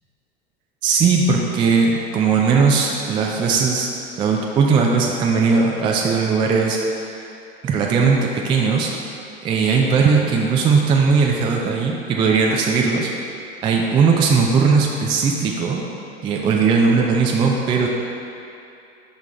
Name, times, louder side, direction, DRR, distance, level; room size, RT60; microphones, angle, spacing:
voice 1, 0.8-3.9 4.2-7.3 7.6-8.9 9.4-13.1 13.6-15.8 16.2-17.9, right 5 dB, 15° right, 0 dB, 0.3 m, -18 dB
5.8 x 3.9 x 4.3 m, 2.6 s
figure-of-eight pair, 80°, 33 cm